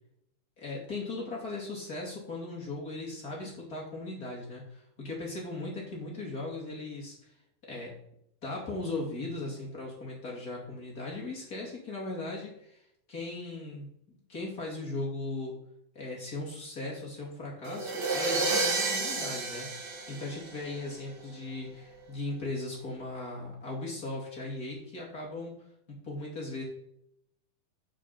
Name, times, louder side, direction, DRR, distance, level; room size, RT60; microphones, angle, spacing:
voice 1, 0.6-7.2 7.6-8.0 8.4-12.8 13.1-15.6 15.9-25.6 26.0-26.6, left 2 dB, 30° left, -3 dB, 2.5 m, -38 dB
sound 1, 17.6-20.9, right 3 dB, 65° right, 1.0 m, -30 dB
7.4 x 7.0 x 5.8 m, 0.75 s
omnidirectional pair, 4.1 m